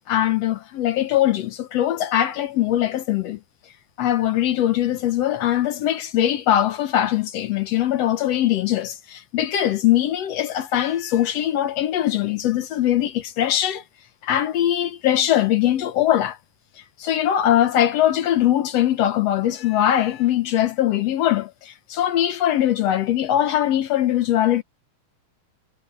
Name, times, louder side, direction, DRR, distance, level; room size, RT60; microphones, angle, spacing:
voice 1, 0.1-3.4 4.0-13.8 14.2-16.4 17.0-24.6, left 12 dB, 65° left, 1.9 m, -21 dB
omnidirectional pair, 3.4 m